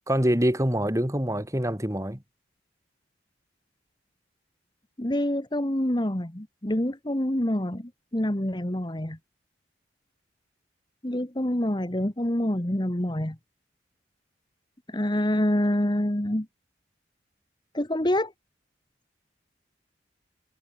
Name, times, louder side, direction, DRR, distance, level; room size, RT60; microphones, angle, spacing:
voice 1, 0.1-2.2, equal, 15° right, 3.3 m, -25 dB
voice 2, 5.0-9.2 11.0-13.4 14.9-16.5 17.7-18.3, left 1 dB, 25° left, 1.5 m, -26 dB
head